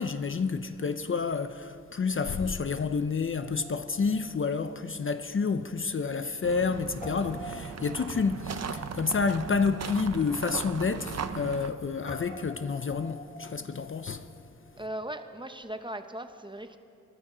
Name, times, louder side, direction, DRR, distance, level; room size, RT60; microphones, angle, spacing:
voice 1, 0.0-14.3, left 5 dB, 40° left, 0.5 m, -29 dB
Guitar, 3.4-5.8 6.0-6.1 7.0-14.9, left 1 dB, 25° left, 1.3 m, -48 dB
sound 1, 6.4-11.7, right 6 dB, 55° right, 0.7 m, -38 dB
voice 2, 14.8-16.8, right 1 dB, 15° right, 0.7 m, -38 dB
22.0 x 13.0 x 4.9 m
wide cardioid pair, 155°, 32 cm